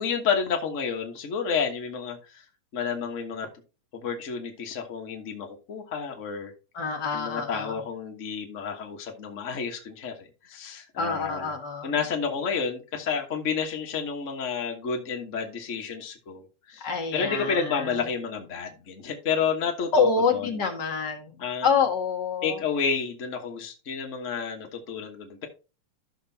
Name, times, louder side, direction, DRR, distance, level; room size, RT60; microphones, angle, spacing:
voice 1, 0.0-2.4 2.7-3.5 3.9-6.5 7.1-11.5 11.8-20.5 21.4-21.9 22.4-25.5, left 6 dB, 75° left, 2 dB, 0.7 m, -30 dB
voice 2, 6.7-7.8 11.0-11.9 16.8-18.0 19.9-22.6, left 5 dB, 40° left, 2 dB, 1.8 m, -27 dB
12.5 x 6.6 x 2.8 m, 0.31 s
omnidirectional pair, 3.6 m